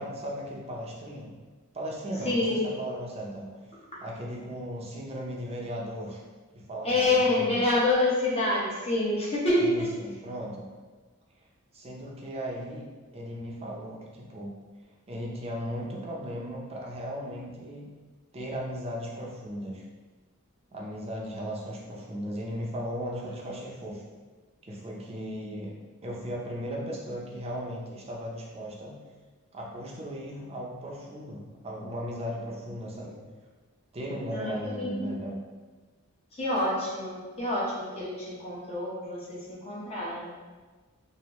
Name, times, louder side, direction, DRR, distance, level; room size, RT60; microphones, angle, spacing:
voice 1, 0.0-1.3 1.7-3.5 4.0-6.2 6.5-7.6 9.6-10.6 11.7-12.8 13.1-14.5 15.1-17.9 18.3-19.8 20.7-24.0 24.7-25.7 26.0-29.0 29.5-33.2 33.9-35.3, equal, 30° right, -3 dB, 0.6 m, -36 dB
voice 2, 2.2-2.7 3.9-4.0 6.8-9.9 34.3-35.2 36.3-40.3, left 2 dB, 30° left, -5 dB, 0.8 m, -27 dB
3.0 x 2.6 x 3.0 m, 1.4 s
head